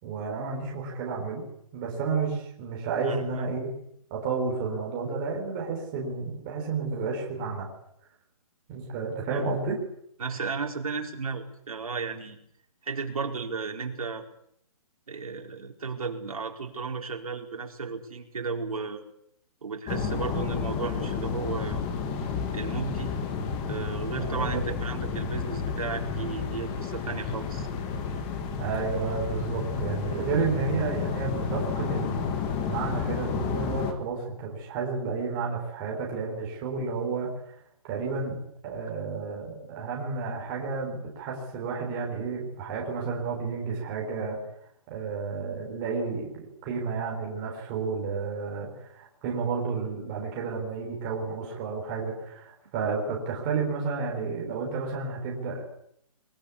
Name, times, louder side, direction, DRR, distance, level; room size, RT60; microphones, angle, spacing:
voice 1, 0.0-1.4 1.7-3.7 4.1-7.7 8.7-9.8 24.2-24.7 28.6-37.3 37.8-44.4 44.9-55.7, right 4 dB, 15° right, -1 dB, 4.3 m, -31 dB
voice 2, 3.0-3.4 9.3-9.5 10.2-12.4 12.8-14.2 15.1-19.0 19.6-21.8 22.5-23.1 23.7-27.7, right 4 dB, 70° right, 2 dB, 4.7 m, -34 dB
sound 1, 19.9-33.9, left 5 dB, 10° left, 1.4 m, -31 dB
23.0 x 21.0 x 8.5 m, 0.71 s
hypercardioid pair, 180°, 19 cm